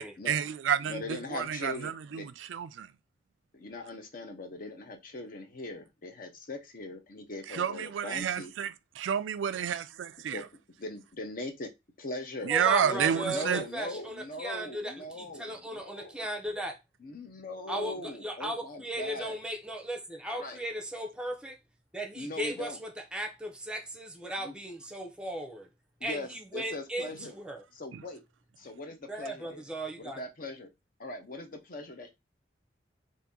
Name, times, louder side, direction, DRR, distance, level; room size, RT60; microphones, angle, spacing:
voice 1, 0.0-2.9 7.5-10.4 12.4-13.6, right 8 dB, 85° right, 0.3 m, -30 dB
voice 2, 0.8-2.3 3.5-8.5 10.3-10.4 10.8-11.7 12.0-12.5 12.8-16.3 17.0-19.4 20.3-20.6 22.1-22.8 24.4-24.5 26.0-27.4 27.7-28.2 28.6-29.6 30.0-30.7 31.0-32.1, left 2 dB, 50° left, 0.7 m, -40 dB
voice 3, 12.5-16.8 17.7-21.6 21.9-25.7 26.0-27.6 29.1-30.2, right 1 dB, 5° right, 0.6 m, -37 dB
2.8 x 2.6 x 3.6 m
head